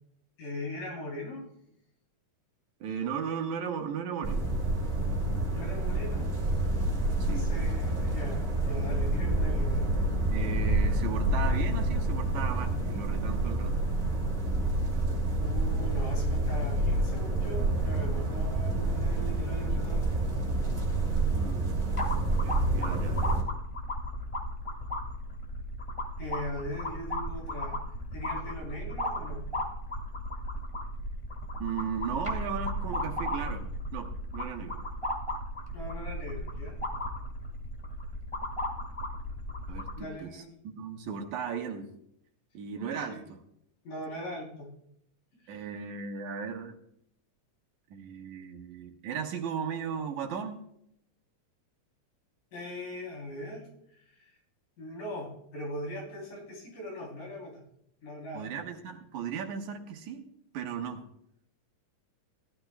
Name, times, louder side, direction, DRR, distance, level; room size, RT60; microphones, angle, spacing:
voice 1, 0.4-1.4 5.5-6.3 7.2-9.8 15.3-20.1 26.2-27.8 28.1-29.4 35.7-36.8 40.0-40.5 43.1-43.2 43.8-44.7 45.4-45.6 52.5-54.4 54.8-57.6 58.0-58.5, left 1 dB, 80° left, -2 dB, 4.9 m, -40 dB
voice 2, 2.8-4.5 7.2-7.5 10.3-13.8 21.3-21.7 22.4-23.3 31.6-33.7 33.9-34.8 39.7-41.9 42.5-43.4 45.5-46.8 47.9-50.7 58.3-60.3 60.5-61.0, right 6 dB, 70° right, 4 dB, 2.5 m, -36 dB
sound 1, 4.2-23.4, right 2 dB, 25° right, 2.7 m, -28 dB
sound 2, 22.0-40.0, left 1 dB, 25° left, 0.6 m, -35 dB
17.0 x 12.5 x 2.3 m, 0.73 s
omnidirectional pair, 3.6 m